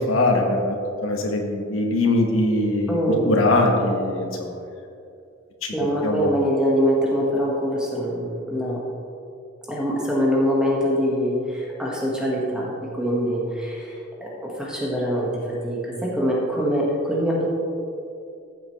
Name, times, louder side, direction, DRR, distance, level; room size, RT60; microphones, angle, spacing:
voice 1, 0.1-0.8 1.0-3.0 3.3-4.3 6.0-6.3, left 2 dB, 90° left, 1 dB, 1.6 m, -21 dB
voice 2, 2.9-3.4 5.7-8.8 9.7-17.5, equal, 5° right, -4 dB, 1.6 m, -24 dB
15.0 x 7.9 x 3.3 m, 2.5 s
head